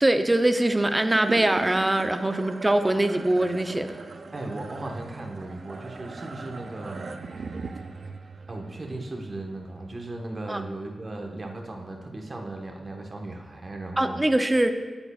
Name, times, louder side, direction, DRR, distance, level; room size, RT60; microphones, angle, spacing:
voice 1, 0.0-3.9 10.5-10.6 14.0-14.7, right 1 dB, 20° right, 8 dB, 0.6 m, -22 dB
sound 1, 0.6-11.1, right 4 dB, 65° right, 0.5 m, -40 dB
voice 2, 4.3-7.1 8.5-14.2, right 2 dB, 45° right, 2 dB, 1.3 m, -37 dB
10.0 x 7.8 x 2.4 m, 1.4 s
supercardioid pair, 45°, 0 cm